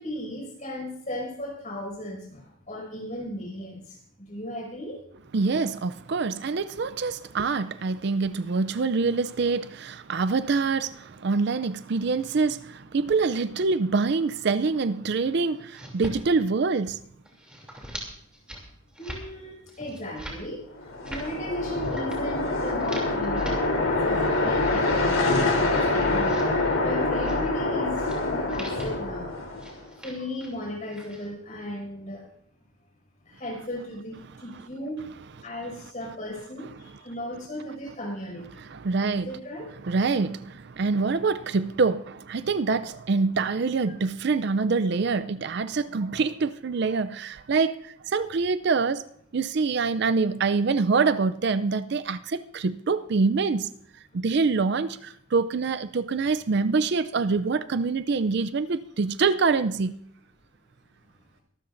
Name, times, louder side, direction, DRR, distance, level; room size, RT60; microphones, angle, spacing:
voice 1, 0.0-4.0 4.3-5.0 19.0-20.6 21.1-26.5 26.8-29.3 30.0-32.2 33.3-35.0 35.4-38.5 39.0-39.7 43.9-44.0, left 1 dB, 35° left, 5.9 m, -36 dB
voice 2, 5.3-17.0 28.6-28.7 38.7-39.3 39.8-49.0 49.3-53.7 54.1-60.0, right 4 dB, 50° right, 0.4 m, -25 dB
sound 1, 15.6-16.2 16.5-17.0 17.3-18.1 18.3-18.6 18.9-19.2 19.7-20.4 20.9-21.3 21.8-22.2 22.6-23.6 24.0-24.9 25.4-26.4 27.2-27.4 28.1-28.2 28.5-29.0 29.6-30.6 30.8-31.3, equal, 5° right, 2.9 m, -42 dB
sound 2, 20.8-29.8, left 2 dB, 75° left, 3.3 m, -25 dB
23.5 x 13.0 x 2.6 m
head